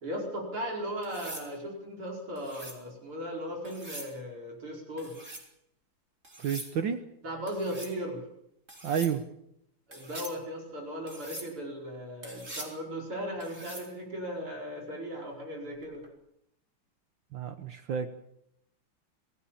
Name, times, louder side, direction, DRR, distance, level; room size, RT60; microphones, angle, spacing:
voice 1, 0.0-5.2 7.2-8.2 9.9-16.0, equal, 90° right, 0 dB, 5.8 m, -37 dB
sound 1, 1.0-1.5 2.4-2.8 3.6-4.1 5.0-5.5 6.2-6.7 7.5-7.9 8.7-9.1 9.9-10.4 11.1-11.5 12.2-12.8 13.4-13.9 15.8-16.1, right 1 dB, 35° right, 4.8 m, -43 dB
voice 2, 6.4-7.0 8.8-9.2 17.3-18.1, right 7 dB, 65° right, 8 dB, 1.8 m, -30 dB
27.0 x 17.0 x 7.3 m, 0.78 s
omnidirectional pair, 2.3 m